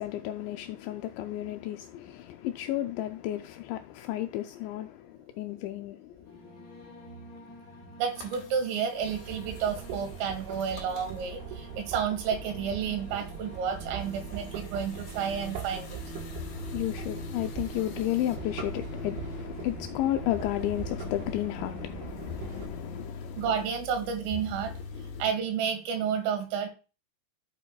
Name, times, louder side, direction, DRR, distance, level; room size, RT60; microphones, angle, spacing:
voice 1, 0.0-6.2 16.3-23.4 25.0-25.1, left 13 dB, 85° left, 2.6 m, -33 dB
sound 1, 6.2-23.0, left 3 dB, 45° left, 1.5 m, -47 dB
voice 2, 8.0-16.0 18.3-18.4 23.4-26.7, right 7 dB, 90° right, 4.2 m, -31 dB
sound 2, 8.1-25.3, left 5 dB, 65° left, 3.3 m, -44 dB
sound 3, 9.0-22.7, right 8 dB, 70° right, 2.9 m, -41 dB
11.5 x 7.4 x 2.3 m
omnidirectional pair, 5.6 m